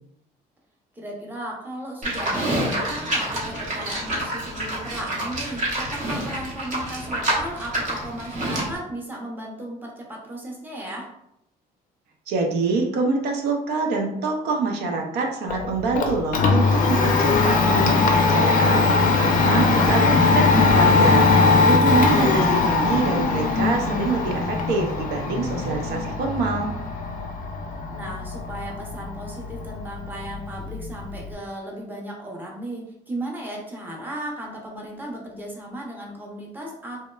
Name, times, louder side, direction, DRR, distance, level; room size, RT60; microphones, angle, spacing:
voice 1, 0.9-11.1 19.5-20.2 27.9-37.0, right 1 dB, 10° right, -2 dB, 0.6 m, -35 dB
Livestock farm animals working animals, 2.0-8.8, right 1 dB, 45° right, 0.8 m, -27 dB
voice 2, 12.3-20.1 20.3-26.7, right 3 dB, 75° right, 2 dB, 0.5 m, -25 dB
Domestic sounds home sounds, 15.5-31.3, left 3 dB, 50° left, 0.4 m, -20 dB
2.9 x 2.1 x 2.2 m, 0.79 s
cardioid pair, 110°, 17 cm